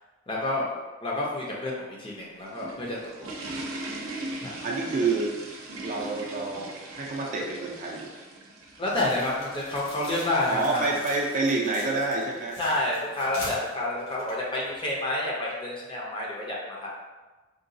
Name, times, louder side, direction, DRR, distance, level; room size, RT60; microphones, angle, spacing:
voice 1, 0.3-0.7 1.0-3.3 4.4-4.5 8.8-10.8 12.6-16.9, left 2 dB, 25° left, -4 dB, 0.6 m, -29 dB
sound 1, 2.3-12.5, right 1 dB, 85° right, 0.6 m, -40 dB
voice 2, 4.6-5.3 5.8-8.1 10.5-12.6, right 3 dB, 40° right, -2 dB, 0.4 m, -28 dB
sound 2, 8.9-15.0, left 1 dB, 60° left, 1.2 m, -43 dB
3.8 x 2.3 x 2.6 m, 1.2 s
head